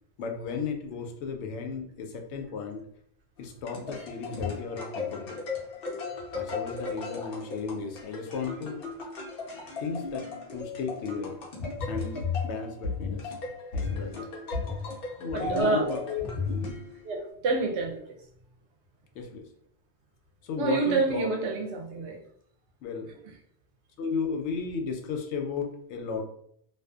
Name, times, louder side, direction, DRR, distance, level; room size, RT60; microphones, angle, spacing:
voice 1, 0.2-2.8 3.4-5.4 6.3-8.8 9.8-11.4 11.9-13.4 13.7-14.3 15.2-16.8 19.2-19.5 20.4-21.3 22.8-23.1 24.0-26.2, left 5 dB, 90° left, 3 dB, 0.9 m, -34 dB
sound 1, 3.4-17.3, left 4 dB, 60° left, 0.8 m, -35 dB
voice 2, 15.3-15.8 17.0-18.0 20.6-22.2, right 3 dB, 90° right, 1 dB, 0.9 m, -27 dB
2.6 x 2.4 x 2.3 m, 0.67 s
omnidirectional pair, 1.1 m